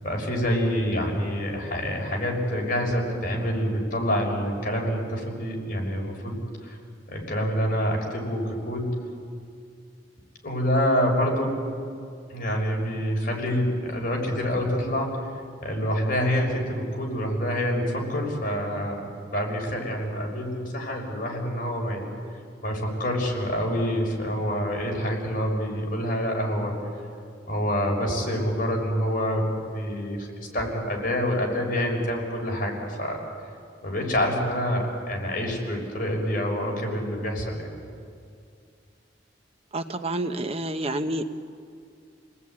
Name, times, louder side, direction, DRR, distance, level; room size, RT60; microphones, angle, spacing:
voice 1, 0.0-6.8 7.1-8.9 10.4-11.6 12.3-15.2 15.6-19.0 19.3-22.1 22.6-26.8 27.5-29.4 29.7-33.2 33.8-37.6, equal, 50° left, 0 dB, 6.4 m, -27 dB
voice 2, 39.7-41.2, right 1 dB, 35° right, 8 dB, 1.0 m, -28 dB
29.5 x 19.5 x 9.7 m, 2.3 s
head